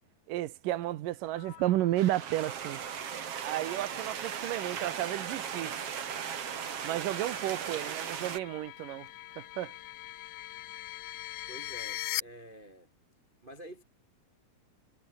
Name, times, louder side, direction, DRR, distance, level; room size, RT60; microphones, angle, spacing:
voice 1, 0.3-2.8 3.4-5.9 6.8-9.1 9.4-9.7, right 14 dB, 90° right, 2.7 m, -32 dB
sound 1, 1.3-12.2, left 16 dB, 80° left, 1.4 m, -44 dB
sound 2, 2.0-8.4, right 8 dB, 50° right, 2.7 m, -37 dB
voice 2, 11.5-12.9 13.4-13.8, right 1 dB, 25° right, 1.2 m, -49 dB
omnidirectional pair, 3.7 m